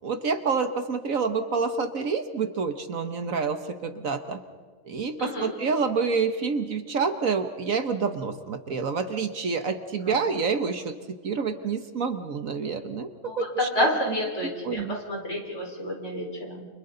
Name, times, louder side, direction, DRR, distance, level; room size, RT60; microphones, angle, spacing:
voice 1, 0.0-4.4 4.8-10.9 11.2-13.1 13.3-13.7 14.4-15.0, right 5 dB, 60° right, 8 dB, 1.5 m, -28 dB
voice 2, 5.2-5.5 10.0-10.2 13.2-16.7, left 1 dB, 45° left, 0 dB, 5.1 m, -29 dB
30.0 x 28.0 x 3.9 m, 1.5 s
omnidirectional pair, 1.7 m